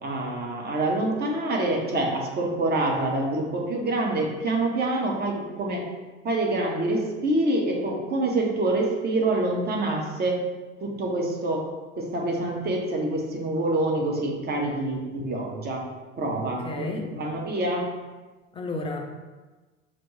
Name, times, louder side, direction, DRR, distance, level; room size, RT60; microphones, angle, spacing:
voice 1, 0.0-5.8 6.2-10.4 10.8-11.7 12.0-15.9 16.2-17.9, right 2 dB, 25° right, 0 dB, 0.9 m, -26 dB
voice 2, 16.4-17.0 18.5-19.0, left 2 dB, 15° left, 2 dB, 0.5 m, -32 dB
6.0 x 2.6 x 3.1 m, 1.3 s
figure-of-eight pair, 70°, 36 cm